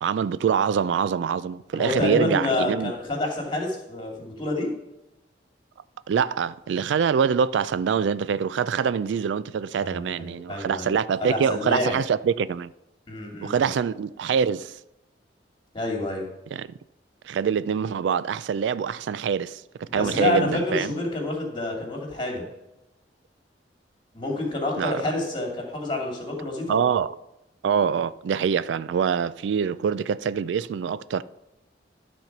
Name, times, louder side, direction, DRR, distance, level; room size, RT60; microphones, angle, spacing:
voice 1, 0.0-2.9 6.1-12.7 13.4-14.8 16.5-16.7 17.2-20.9 24.8-25.0 26.7-27.2 27.6-31.2, right 7 dB, 80° right, 0.3 m, -25 dB
voice 2, 1.7-4.7 9.8-12.0 13.1-13.7 15.7-16.3 19.9-22.4 24.1-26.8, left 2 dB, 30° left, 2.5 m, -28 dB
12.0 x 4.4 x 5.9 m
head